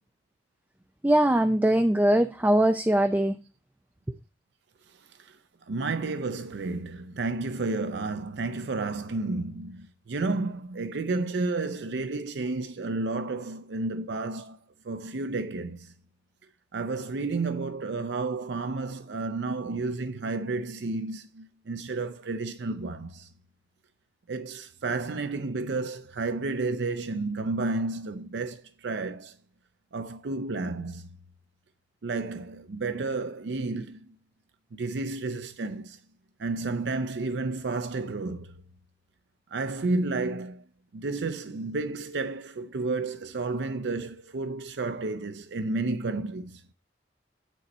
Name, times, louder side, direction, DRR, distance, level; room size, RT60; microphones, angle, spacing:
voice 1, 1.0-3.4, right 1 dB, 10° right, 0.4 m, -21 dB
voice 2, 5.7-14.6 14.9-15.9 16.7-23.3 24.3-29.3 29.9-31.1 32.0-34.0 34.7-36.0 36.4-38.5 39.5-40.6 40.9-46.6, right 3 dB, 70° right, 0.5 m, -31 dB
9.2 x 4.2 x 5.2 m
head